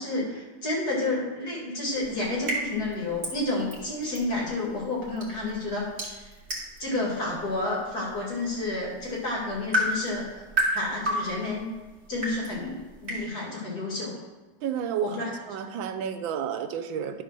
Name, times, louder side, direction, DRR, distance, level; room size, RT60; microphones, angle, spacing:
voice 1, 0.0-6.3 6.8-10.3 10.7-11.7 12.1-14.2 15.0-15.3, left 2 dB, 55° left, -4 dB, 2.8 m, -30 dB
sound 1, 1.9-13.3, right 1 dB, 35° right, 2.3 m, -34 dB
voice 2, 14.6-17.2, right 8 dB, 85° right, 9 dB, 1.4 m, -31 dB
11.5 x 4.0 x 6.1 m, 1.2 s
omnidirectional pair, 2.1 m